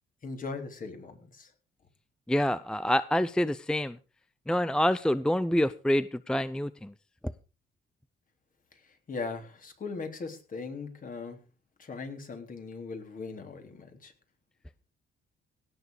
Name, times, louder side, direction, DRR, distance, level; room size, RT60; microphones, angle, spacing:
voice 1, 0.2-1.5 9.1-11.4 11.8-14.1, left 4 dB, 45° left, 5 dB, 3.6 m, -39 dB
voice 2, 2.3-4.0 4.5-6.9, equal, 5° left, 15 dB, 0.5 m, -27 dB
17.5 x 7.2 x 5.0 m, 0.33 s
cardioid pair, 90°, 20 cm